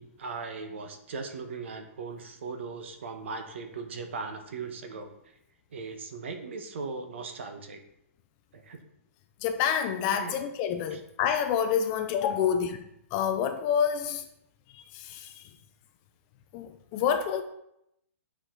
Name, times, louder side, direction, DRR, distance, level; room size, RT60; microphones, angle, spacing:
voice 1, 0.0-5.1 5.7-7.8 8.5-8.8 10.1-10.4 10.9-11.0, right 4 dB, 55° right, 6 dB, 1.1 m, -38 dB
voice 2, 9.4-12.8 13.1-14.2 14.9-15.3 16.5-17.4, left 8 dB, 20° left, 7 dB, 0.3 m, -27 dB
8.4 x 4.8 x 3.7 m, 0.81 s
hypercardioid pair, 175°, 8 cm